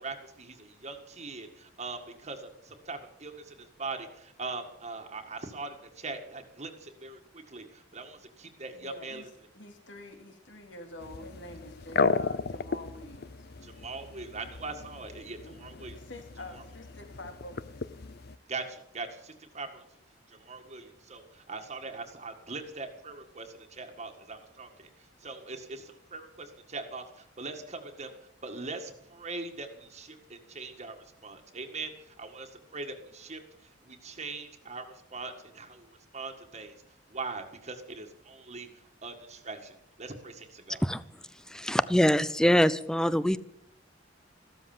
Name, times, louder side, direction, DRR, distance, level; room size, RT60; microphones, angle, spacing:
voice 1, 0.0-9.2 13.6-16.0 16.5-16.6 18.5-19.8 20.3-24.9 25.2-28.1 28.4-31.0 31.2-33.4 33.8-36.7 37.1-38.7 39.0-40.8, right 3 dB, 35° right, 4 dB, 1.8 m, -41 dB
voice 2, 8.7-13.3 15.4-17.8, left 1 dB, 70° left, 5 dB, 2.6 m, -46 dB
sound 1, 11.0-18.4, left 4 dB, 55° left, 0.6 m, -35 dB
voice 3, 41.5-43.4, equal, 5° left, 17 dB, 0.6 m, -24 dB
15.0 x 13.0 x 7.3 m, 0.76 s
head